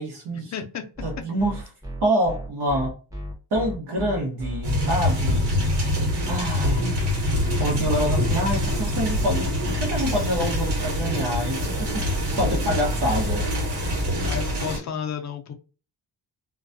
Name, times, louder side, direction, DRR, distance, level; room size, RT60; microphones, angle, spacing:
voice 1, 0.0-0.5 1.0-1.6 2.0-2.9 3.5-5.5 6.3-7.0 7.6-12.1 12.4-13.5, equal, 70° right, 0.9 m, -26 dB
voice 2, 0.5-0.9 14.2-15.5, left 7 dB, 45° left, 0.5 m, -31 dB
sound 1, 1.0-14.5, equal, 10° right, 0.8 m, -33 dB
sound 2, 4.6-14.8, left 1 dB, 85° right, 1.3 m, -25 dB
2.3 x 2.2 x 2.5 m
cardioid pair, 140°, 41 cm